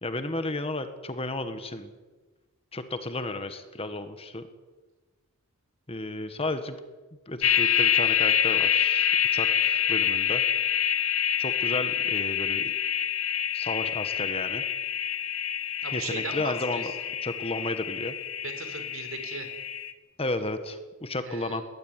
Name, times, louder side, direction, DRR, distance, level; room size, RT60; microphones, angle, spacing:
voice 1, 0.0-1.9 2.7-4.5 5.9-6.8 7.3-10.4 11.4-12.7 13.5-14.6 15.9-16.9 17.2-18.1 20.2-21.6, left 2 dB, 25° left, 9 dB, 1.7 m, -33 dB
sound 1, 7.4-19.9, left 9 dB, 65° left, 1.7 m, -27 dB
voice 2, 15.8-17.1 18.4-19.5 21.2-21.6, right 4 dB, 65° right, 7 dB, 4.7 m, -38 dB
20.5 x 19.5 x 9.8 m, 1.3 s
head